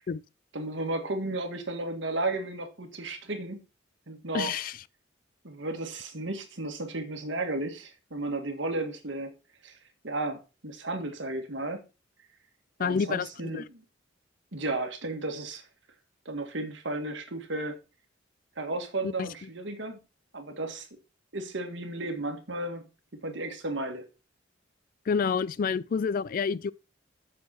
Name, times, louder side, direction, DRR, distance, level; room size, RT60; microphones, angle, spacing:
voice 1, 0.5-3.6 4.1-4.5 5.4-9.3 9.6-9.8 10.0-11.8 12.8-13.8 14.5-15.6 16.2-17.7 18.6-20.0 20.3-20.9 21.3-22.8 23.2-24.0, right 2 dB, 65° right, 1.7 m, -34 dB
voice 2, 4.3-4.8 12.8-13.6 19.0-19.3 25.1-26.7, left 6 dB, 45° left, 0.3 m, -28 dB
7.4 x 6.7 x 4.3 m
head